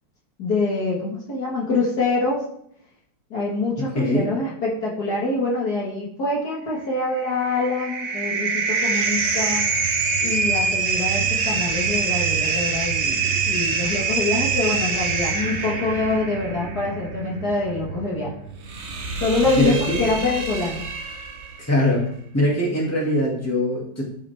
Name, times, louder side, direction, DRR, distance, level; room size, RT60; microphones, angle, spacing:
voice 1, 0.4-2.4 3.3-9.6 10.2-18.3 19.2-20.9, left 3 dB, 50° left, -4 dB, 2.1 m, -25 dB
voice 2, 4.0-4.3 19.6-20.0 21.6-22.0 22.3-24.0, left 1 dB, 5° left, -3 dB, 2.2 m, -21 dB
sound 1, 7.0-21.6, right 5 dB, 45° right, 0.9 m, -25 dB
13.0 x 5.9 x 3.5 m, 0.69 s
omnidirectional pair, 2.2 m